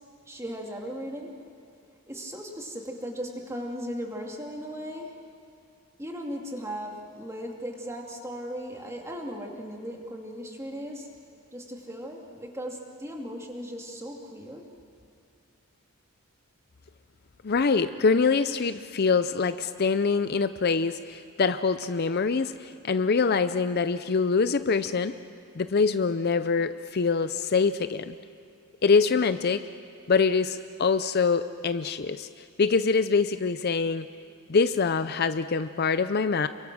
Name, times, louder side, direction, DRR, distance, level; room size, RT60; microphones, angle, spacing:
voice 1, 0.3-1.3 2.1-5.1 6.0-11.1 11.5-14.6, equal, 15° right, 0 dB, 2.5 m, -37 dB
voice 2, 17.4-25.1 25.6-28.1 28.8-29.6 30.1-32.3 32.6-34.1 34.5-36.5, left 5 dB, 45° left, 11 dB, 0.5 m, -24 dB
28.5 x 23.5 x 6.2 m, 2.4 s
head